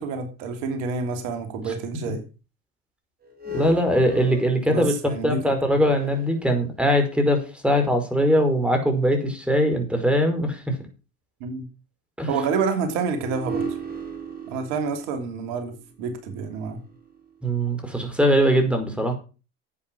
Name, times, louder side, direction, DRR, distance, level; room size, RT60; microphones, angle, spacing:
voice 1, 0.0-2.2 4.7-5.8 11.4-11.6 12.3-13.8 14.5-16.8, right 5 dB, 65° right, 6 dB, 3.1 m, -28 dB
sound 1, 3.2-7.1 7.8-7.9 13.1-17.4, right 2 dB, 25° right, 5.2 m, -37 dB
voice 2, 3.5-10.8 12.2-12.3 17.4-19.1, equal, 5° right, 5 dB, 5.2 m, -21 dB
11.0 x 8.6 x 6.1 m, 0.33 s
hypercardioid pair, 65°, 38 cm